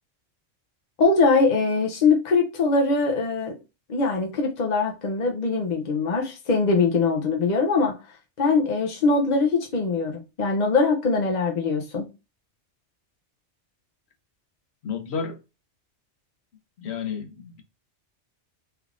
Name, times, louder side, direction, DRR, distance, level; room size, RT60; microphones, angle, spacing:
voice 1, 1.0-3.6 3.9-8.0 8.4-12.1, left 4 dB, 45° left, 0.6 m, -22 dB
voice 2, 14.8-15.4 16.8-17.6, left 6 dB, 65° left, 1.0 m, -31 dB
3.5 x 3.3 x 2.4 m
omnidirectional pair, 1.2 m